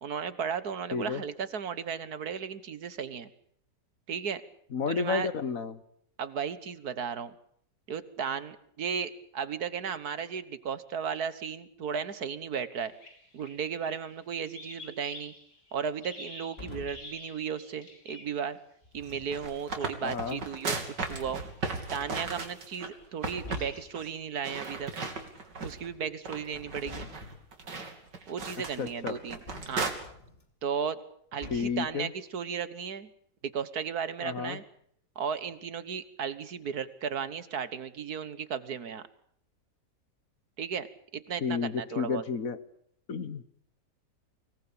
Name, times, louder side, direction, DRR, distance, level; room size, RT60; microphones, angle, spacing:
voice 1, 0.0-3.3 4.1-4.4 4.9-5.3 6.2-7.3 7.9-12.9 13.3-15.3 15.7-18.6 18.9-21.4 21.9-24.9 25.6-27.0 28.3-29.4 29.7-29.9 30.6-31.0 31.3-33.1 33.4-34.6 35.2-39.1 40.6-40.9 41.1-42.2, right 7 dB, 65° right, 15 dB, 1.7 m, -35 dB
voice 2, 0.9-1.2 4.7-5.8 20.0-20.4 28.8-29.1 31.5-32.1 34.2-34.6 41.4-42.6 43.1-43.4, left 5 dB, 55° left, 14 dB, 1.6 m, -31 dB
sound 1, 12.8-18.5 19.0-19.5 19.8-19.9 20.3-20.5 21.2-21.5 22.2-22.5 23.2-24.1, left 2 dB, 75° left, 5.9 m, -50 dB
sound 2, 16.6-17.2 18.8-19.5 20.7-20.8 21.2-22.5 23.0-23.1 23.4-23.9 25.5-26.1 26.4-27.5 29.5-30.4 31.4-31.9, left 2 dB, 35° left, 3.2 m, -47 dB
sound 3, 19.1-22.9 23.2-23.7 23.9-24.1 24.4-25.9 26.2-29.9, right 3 dB, 90° right, 3.6 m, -36 dB
25.0 x 19.0 x 8.9 m, 0.68 s
omnidirectional pair, 1.8 m